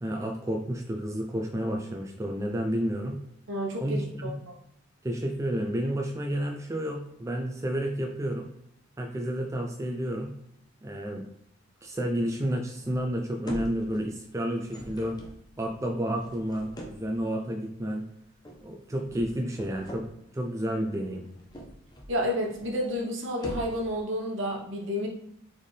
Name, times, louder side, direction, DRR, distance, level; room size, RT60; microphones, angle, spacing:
voice 1, 0.0-3.2 3.8-4.3 5.0-8.5 9.0-10.3 10.8-11.2 11.8-15.2 15.6-18.0 18.6-20.0 20.3-21.2, equal, 15° right, 1 dB, 0.4 m, -30 dB
voice 2, 3.5-4.5 22.1-25.1, equal, 65° right, -1 dB, 1.0 m, -30 dB
sound 1, 12.8-13.2 13.5-14.2 14.5-17.2 18.5-18.7 19.0-20.1 21.2-22.2 22.5-23.0 23.3-24.0, equal, 20° left, 0.7 m, -43 dB
4.3 x 3.6 x 3.2 m, 0.76 s
head